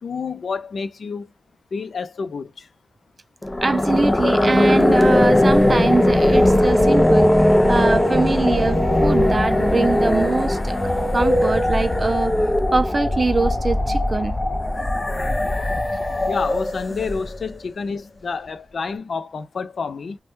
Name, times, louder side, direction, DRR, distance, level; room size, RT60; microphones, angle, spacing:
voice 1, 0.0-1.3 1.7-2.7 16.3-20.2, left 5 dB, 75° left, 0.5 m, -29 dB
sound 1, 3.4-17.5, left 1 dB, 25° left, 0.5 m, -19 dB
voice 2, 3.6-7.3 7.7-10.8 11.1-12.4 12.7-14.4, right 3 dB, 45° right, 0.4 m, -22 dB
3.2 x 2.2 x 3.0 m
wide cardioid pair, 80°, 0 cm